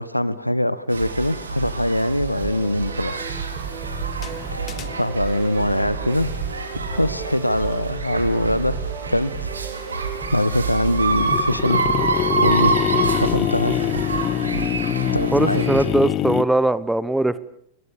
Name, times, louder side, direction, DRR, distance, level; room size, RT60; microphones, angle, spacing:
voice 1, 0.0-3.2 4.5-4.7 5.0-6.3 6.8-8.8 9.1-9.5 10.3-11.8 12.4-12.8 13.2-13.8 15.1-15.6, left 1 dB, 90° left, 17 dB, 1.2 m, -22 dB
sound 1, 0.9-15.8, right 4 dB, 75° right, 3.4 m, -27 dB
sound 2, 2.4-12.5, right 6 dB, 30° right, 3.3 m, -35 dB
sound 3, 4.2-5.1 11.0-16.4, left 12 dB, 35° left, 1.2 m, -24 dB
voice 2, 15.3-17.4, right 2 dB, 5° right, 17 dB, 1.2 m, -20 dB
29.5 x 22.5 x 7.0 m, 0.66 s
figure-of-eight pair, 90°, 0 cm